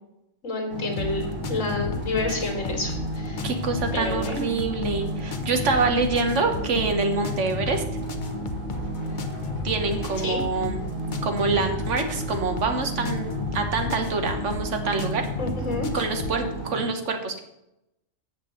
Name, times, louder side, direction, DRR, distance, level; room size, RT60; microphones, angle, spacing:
voice 1, 0.4-3.5 3.9-4.5 10.2-10.4 15.4-15.9, left 2 dB, 80° left, 2 dB, 2.4 m, -29 dB
sound 1, 0.7-16.8, right 1 dB, 45° right, 2.9 m, -33 dB
sound 2, 1.0-16.4, left 5 dB, 45° left, 0.8 m, -34 dB
voice 2, 3.4-7.8 9.6-10.8 11.2-15.3 15.9-17.4, right 4 dB, 70° right, 6 dB, 1.4 m, -26 dB
7.7 x 6.0 x 7.7 m, 0.86 s
omnidirectional pair, 1.3 m